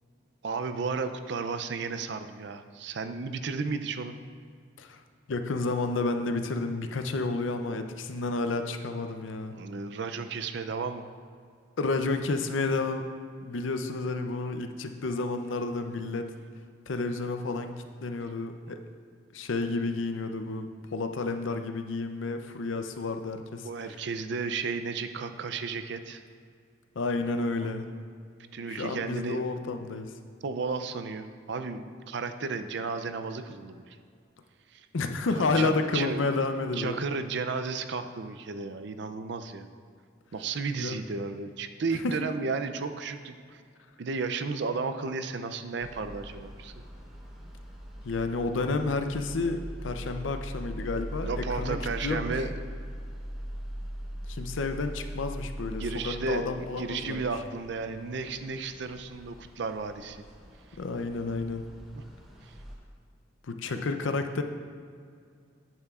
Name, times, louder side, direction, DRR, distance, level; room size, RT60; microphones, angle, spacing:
voice 1, 0.4-4.2 9.5-11.1 23.6-26.2 27.6-27.7 28.5-29.4 30.4-34.0 34.7-34.8 35.4-36.2 36.7-39.7 40.3-43.3 44.0-46.7 51.2-52.6 55.8-60.2 63.7-63.8, right 4 dB, 60° right, 9 dB, 0.4 m, -33 dB
voice 2, 5.3-9.5 11.8-13.1 13.4-16.3 16.9-18.8 19.3-20.7 20.9-24.0 27.0-27.9 28.7-30.1 34.9-37.0 40.8-41.0 41.9-42.2 48.0-52.4 54.3-57.3 60.8-61.7 63.5-64.4, left 3 dB, 75° left, 7 dB, 0.5 m, -31 dB
sound 1, 45.8-62.8, equal, ahead, 1.0 m, -41 dB
10.5 x 8.8 x 2.4 m, 2.2 s
head